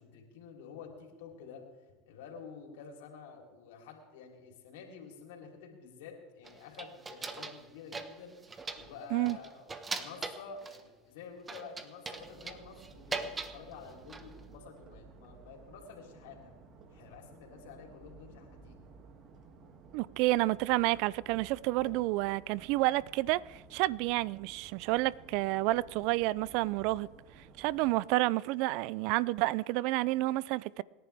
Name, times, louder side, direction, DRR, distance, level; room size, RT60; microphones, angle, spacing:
voice 1, 0.0-1.6 2.1-8.4 8.8-9.7 9.9-16.5 16.9-18.8, left 5 dB, 80° left, 3.7 m, -49 dB
sound 1, 6.4-7.6 7.9-8.9 9.3-10.8 11.5-13.6 13.9-14.4, right 4 dB, 20° right, 1.4 m, -40 dB
sound 2, 12.1-28.1, right 4 dB, 45° right, 2.3 m, -55 dB
voice 2, 19.9-27.1 27.6-30.8, right 19 dB, 65° right, 0.4 m, -30 dB
27.0 x 11.0 x 3.5 m
supercardioid pair, 105°, 0 cm